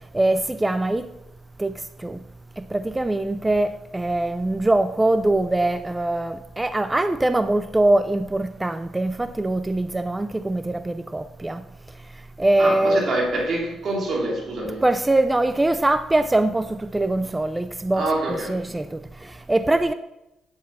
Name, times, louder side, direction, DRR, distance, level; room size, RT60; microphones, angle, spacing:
voice 1, 0.1-1.1 1.6-2.2 2.6-11.6 12.4-13.0 14.8-19.9, right 2 dB, 15° right, 0.5 m, -23 dB
voice 2, 12.6-14.8 17.9-18.6, right 2 dB, 55° right, 3.1 m, -25 dB
11.5 x 9.7 x 4.2 m
cardioid pair, 90°, 0 cm